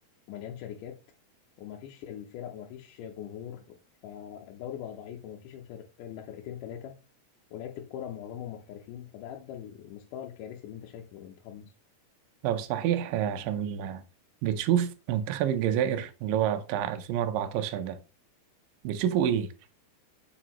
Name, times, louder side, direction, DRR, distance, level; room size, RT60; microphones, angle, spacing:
voice 1, 0.3-1.0 1.6-3.8 4.0-7.0 7.5-11.7, left 10 dB, 75° left, 2.2 m, -41 dB
voice 2, 12.4-14.0 14.4-18.0 18.8-19.5, right 10 dB, 80° right, 2.2 m, -28 dB
7.5 x 4.5 x 3.0 m
omnidirectional pair, 4.0 m